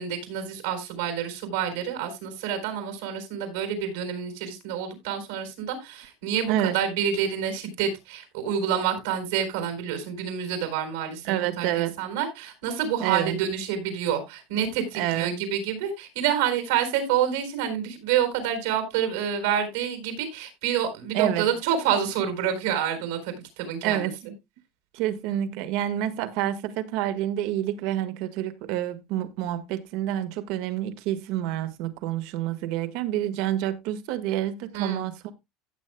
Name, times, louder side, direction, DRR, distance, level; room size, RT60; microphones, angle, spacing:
voice 1, 0.0-24.1 34.7-35.0, right 8 dB, 85° right, 4.1 m, -28 dB
voice 2, 11.2-12.0 13.0-13.4 14.9-15.5 21.1-21.5 23.8-24.3 24.9-35.2, right 12 dB, 70° right, 1.5 m, -28 dB
16.0 x 7.4 x 2.2 m
supercardioid pair, 115°, 0 cm